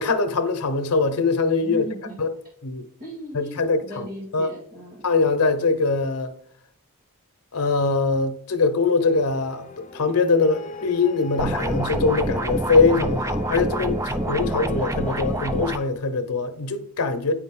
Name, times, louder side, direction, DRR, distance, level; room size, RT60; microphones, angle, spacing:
voice 1, 0.0-1.9 2.2-2.3 2.6-2.9 3.3-4.1 4.3-4.5 5.0-6.3 7.5-17.3, left 4 dB, 90° left, 0.9 m, -22 dB
voice 2, 1.6-2.2 3.0-5.0, right 1 dB, 40° right, 2.0 m, -37 dB
sound 1, 9.0-15.8, left 6 dB, 35° left, 0.6 m, -41 dB
sound 2, 11.4-15.8, right 1 dB, 15° right, 0.4 m, -26 dB
8.8 x 5.1 x 3.8 m
head